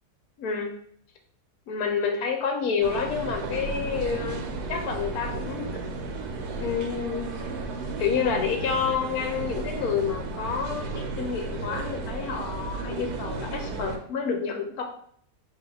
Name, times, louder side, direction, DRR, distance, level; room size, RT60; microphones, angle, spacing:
voice 1, 0.4-0.7 1.7-5.8 6.6-7.3 8.0-14.8, left 6 dB, 75° left, 3 dB, 1.2 m, -29 dB
sound 1, 2.8-14.0, right 3 dB, 80° right, 1.1 m, -34 dB
3.9 x 2.9 x 3.4 m, 0.64 s
omnidirectional pair, 1.7 m